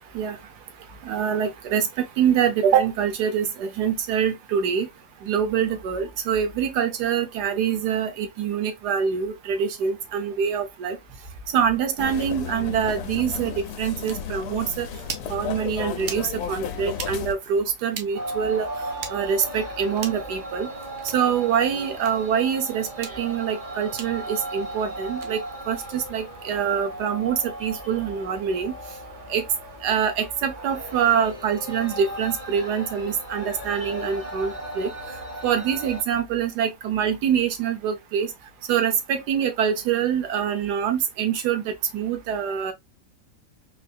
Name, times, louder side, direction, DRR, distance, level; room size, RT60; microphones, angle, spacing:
voice 1, 1.0-4.9 5.2-11.0 11.5-14.9 15.3-18.7 19.1-20.7 21.1-28.7 29.3-29.4 29.8-34.9 35.4-38.3 38.7-42.7, right 8 dB, 70° right, 1.3 m, -25 dB
sound 1, 12.0-17.3, left 7 dB, 75° left, 1.1 m, -33 dB
sound 2, 14.1-14.2 15.0-15.3 16.0-16.3 16.9-17.1 17.9-18.1 19.0-19.1 20.0-20.3 21.0-21.2 22.0-22.1 22.9-23.2 24.0-24.1 25.1-25.3, right 7 dB, 90° right, 1.3 m, -35 dB
sound 3, 18.1-36.0, right 1 dB, 35° right, 0.8 m, -36 dB
4.0 x 2.7 x 2.3 m
omnidirectional pair, 1.8 m